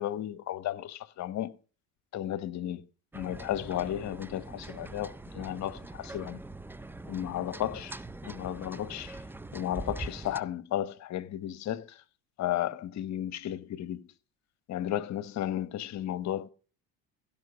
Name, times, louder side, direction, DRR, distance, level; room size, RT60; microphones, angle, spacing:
voice 1, 0.0-1.5 2.1-2.8 3.1-6.4 7.0-9.2 9.5-12.0 12.4-14.1 14.7-16.5, left 12 dB, 50° left, 1.0 m, -34 dB
sound 1, 3.1-10.4, right 2 dB, 5° right, 0.5 m, -43 dB
16.0 x 5.7 x 5.1 m
supercardioid pair, 85°, 36 cm